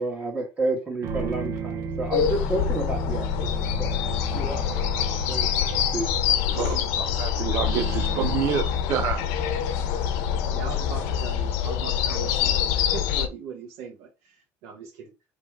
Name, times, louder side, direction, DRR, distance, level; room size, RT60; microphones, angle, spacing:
voice 1, 0.0-4.0 4.3-4.6 5.3-5.6 5.9-6.1, right 2 dB, 25° right, 1.6 m, -30 dB
sound 1, 1.0-12.4, right 5 dB, 65° right, 0.9 m, -36 dB
sound 2, 2.1-13.3, left 9 dB, 85° left, 0.8 m, -25 dB
voice 2, 6.5-9.2, right 9 dB, 45° right, 0.6 m, -28 dB
voice 3, 10.5-15.1, right 6 dB, 85° right, 1.3 m, -40 dB
3.8 x 3.1 x 4.6 m
cardioid pair, 160°, 6 cm